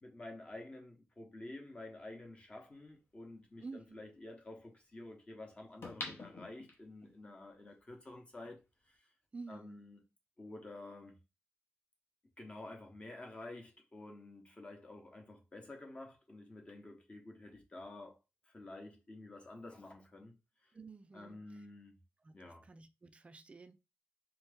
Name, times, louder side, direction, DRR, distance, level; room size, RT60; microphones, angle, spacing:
voice 1, 0.0-8.6 9.5-10.0 10.4-11.2 12.4-18.2 18.5-20.4 21.1-22.0 22.3-22.6, left 2 dB, 25° left, 0.9 m, -50 dB
voice 2, 3.6-4.0 9.3-9.8 20.7-21.6 22.2-22.3 22.6-23.7, right 4 dB, 25° right, 0.3 m, -50 dB
sound 1, 5.8-7.1 7.6-7.7, left 3 dB, 50° left, 0.8 m, -45 dB
3.6 x 2.8 x 3.4 m
wide cardioid pair, 180°, 5 cm